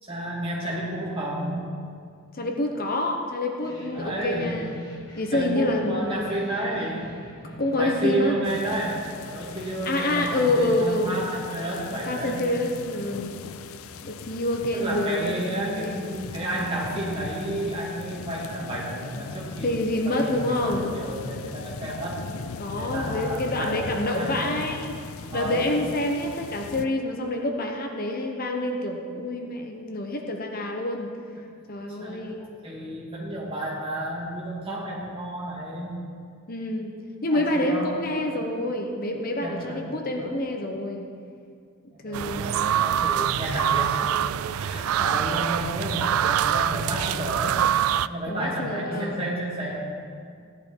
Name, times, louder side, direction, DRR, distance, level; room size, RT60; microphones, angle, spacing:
voice 1, 0.0-1.6 3.9-4.6 5.3-7.1 7.8-12.4 14.7-22.2 22.8-24.6 25.3-25.7 32.0-35.9 37.3-38.4 39.4-40.3 41.9-44.1 44.6-50.1, right 1 dB, 25° right, -5 dB, 2.8 m, -31 dB
voice 2, 2.3-4.8 5.2-6.1 7.6-8.4 9.8-11.2 11.6-13.3 14.0-16.0 19.1-19.2 19.6-20.9 22.6-24.9 25.3-31.1 31.7-32.5 36.5-36.9 37.2-41.0 42.0-42.8 48.3-49.2, left 1 dB, 40° left, 2 dB, 0.9 m, -27 dB
sound 1, 3.6-14.2, equal, 20° left, 1.9 m, -46 dB
sound 2, 8.4-26.9, left 5 dB, 70° left, 0.5 m, -40 dB
sound 3, 42.1-48.1, right 10 dB, 70° right, 0.3 m, -25 dB
15.5 x 11.0 x 4.6 m, 2.3 s
head